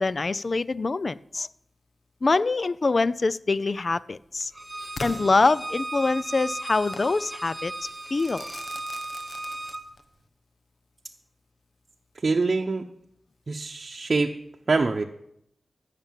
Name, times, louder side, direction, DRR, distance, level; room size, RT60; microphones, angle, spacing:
voice 1, 0.0-1.5 2.2-4.5 5.0-7.7 8.1-8.5, left 3 dB, 50° left, 18 dB, 0.5 m, -24 dB
Bowed string instrument, 4.5-9.8, right 2 dB, 25° right, 1.3 m, -36 dB
Crackle / Fireworks, 4.9-6.1 6.9-7.2 8.1-10.1, left 3 dB, 70° left, 1.1 m, -40 dB
voice 2, 12.2-12.9 13.5-14.3 14.7-15.0, right 3 dB, 55° right, 2 dB, 0.8 m, -24 dB
15.0 x 6.7 x 7.4 m, 0.76 s
wide cardioid pair, 65°, 0 cm